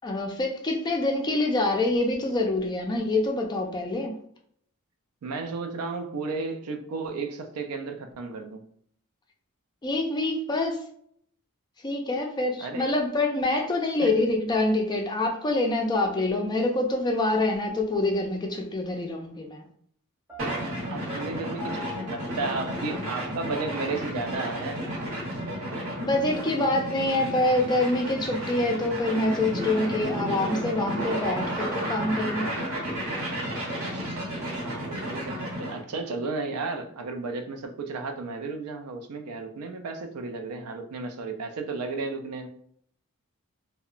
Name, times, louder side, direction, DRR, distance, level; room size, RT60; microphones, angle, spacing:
voice 1, 0.0-4.2 9.8-10.8 11.8-19.6 26.0-32.5, left 2 dB, 20° left, 0.3 m, -26 dB
voice 2, 5.2-8.6 12.6-12.9 14.0-14.1 20.9-24.9 34.4-42.5, right 3 dB, 85° right, 0.4 m, -33 dB
Piano, 20.3-24.2, left 2 dB, 5° right, 0.7 m, -44 dB
sound 1, 20.4-35.8, equal, 65° right, 0.8 m, -32 dB
2.7 x 2.1 x 2.4 m
head